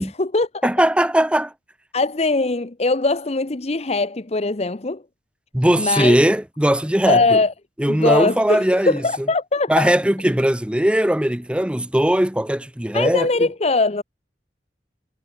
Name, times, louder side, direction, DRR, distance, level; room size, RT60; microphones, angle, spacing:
voice 1, 0.0-0.7 1.9-5.0 5.8-6.2 7.1-7.5 7.8-9.9 12.9-14.0, left 3 dB, 35° left, 0.9 m, -21 dB
voice 2, 0.6-1.5 5.5-7.4 7.8-9.0 9.7-13.3, right 1 dB, 5° right, 0.7 m, -19 dB
head